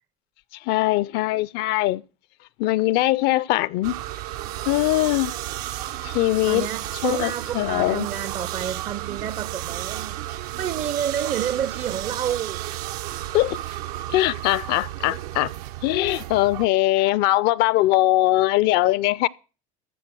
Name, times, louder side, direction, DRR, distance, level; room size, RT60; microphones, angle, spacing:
voice 1, 0.7-2.0 2.6-3.9 4.7-5.3 6.0-6.7 7.0-8.1 13.3-13.6 14.1-15.5 15.8-19.3, left 17 dB, 60° left, 0.5 m, -21 dB
sound 1, 3.8-16.7, right 14 dB, 80° right, 0.8 m, -33 dB
voice 2, 6.5-10.2 10.6-12.6, right 9 dB, 35° right, 0.5 m, -29 dB
15.0 x 6.5 x 6.1 m
supercardioid pair, 120°, 19 cm